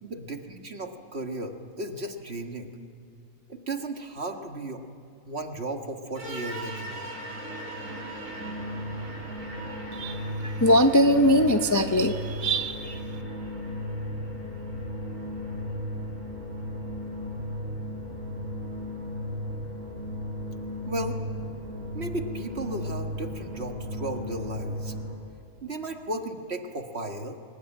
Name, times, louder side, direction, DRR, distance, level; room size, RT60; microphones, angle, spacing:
voice 1, 0.0-2.8 3.5-4.8 5.3-7.1 20.9-21.2 21.9-24.9 25.6-27.4, right 2 dB, 50° right, 5 dB, 1.8 m, -35 dB
sound 1, 6.1-25.1, equal, 65° right, 5.7 m, -35 dB
voice 2, 9.9-12.9, equal, 20° left, 6 dB, 0.6 m, -22 dB
24.5 x 21.0 x 9.0 m, 2.4 s
omnidirectional pair, 1.5 m